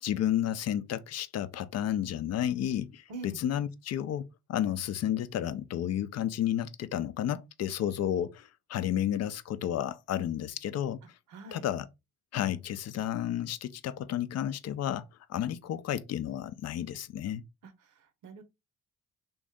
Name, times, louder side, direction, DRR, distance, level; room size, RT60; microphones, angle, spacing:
voice 1, 0.0-11.2 11.5-11.9 12.3-17.4, left 11 dB, 55° left, 0.4 m, -32 dB
voice 2, 11.3-11.6 17.6-18.4, right 4 dB, 85° right, 0.8 m, -45 dB
3.1 x 2.6 x 3.5 m
cardioid pair, 90°, 30 cm